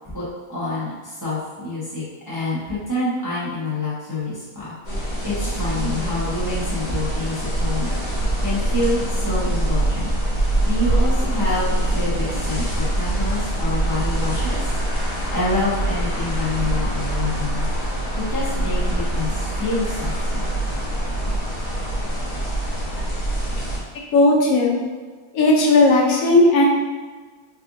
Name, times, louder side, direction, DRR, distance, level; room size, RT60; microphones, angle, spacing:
voice 1, 0.5-10.1 10.4-14.6 14.9-17.7 18.1-20.5, left 2 dB, 15° right, -10 dB, 0.8 m, -27 dB
sound 1, 4.8-23.8, right 1 dB, 30° left, 0.9 m, -24 dB
voice 2, 24.1-24.8 25.3-26.7, left 2 dB, 75° left, -1 dB, 1.1 m, -15 dB
3.6 x 3.3 x 2.5 m, 1.4 s
omnidirectional pair, 1.6 m